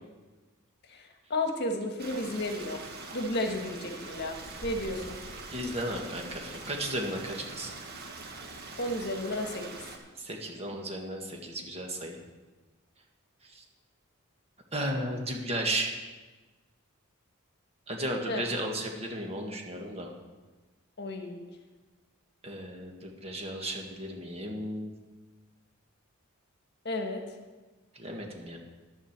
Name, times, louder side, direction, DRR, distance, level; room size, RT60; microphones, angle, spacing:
voice 1, 0.9-2.8 3.1-5.2 8.8-9.6 18.3-18.4 21.0-21.5 26.8-27.2, left 1 dB, 50° left, 4 dB, 1.4 m, -33 dB
Stream, 2.0-10.0, right 3 dB, 50° right, 1.5 m, -43 dB
voice 2, 5.5-7.7 10.2-12.2 13.5-13.6 14.7-15.9 17.9-20.1 22.4-24.9 27.9-28.6, right 1 dB, 30° right, 1 dB, 1.7 m, -34 dB
11.0 x 7.4 x 7.3 m, 1.3 s
head